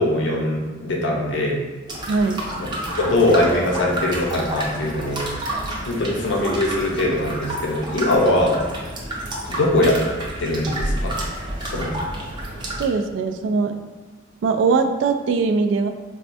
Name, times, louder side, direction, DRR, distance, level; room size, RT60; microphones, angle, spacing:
voice 1, 0.0-1.6 2.9-5.2 5.9-8.5 9.5-10.0 10.4-11.1 11.6-11.9, left 1 dB, 80° left, -1 dB, 0.5 m, -21 dB
sound 1, 1.9-12.8, right 1 dB, 25° right, 0.6 m, -29 dB
voice 2, 2.1-2.4 12.8-13.8 14.4-15.9, right 4 dB, 85° right, 7 dB, 0.3 m, -21 dB
4.2 x 2.2 x 2.6 m, 1.3 s
head